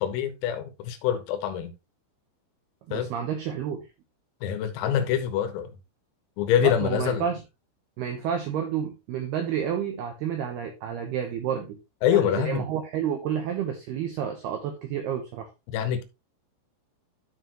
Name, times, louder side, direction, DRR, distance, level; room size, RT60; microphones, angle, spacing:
voice 1, 0.0-1.7 2.9-3.1 4.4-5.7 6.4-7.2 12.0-12.7 15.7-16.0, left 10 dB, 90° left, 3.8 m, -25 dB
voice 2, 2.9-3.9 6.6-7.4 8.0-11.8 12.1-15.5, right 8 dB, 80° right, 2.3 m, -30 dB
13.0 x 4.6 x 2.9 m
omnidirectional pair, 5.9 m